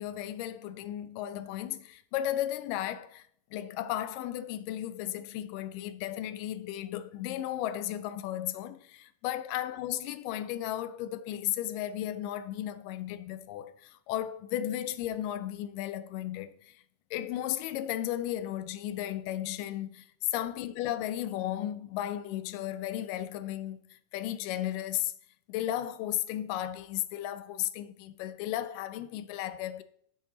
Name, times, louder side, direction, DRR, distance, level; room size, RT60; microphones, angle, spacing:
voice 1, 0.0-3.2 3.5-16.8 17.1-25.1 25.5-29.8, left 12 dB, 85° left, 2.2 m, -35 dB
8.7 x 8.3 x 3.9 m
omnidirectional pair, 3.8 m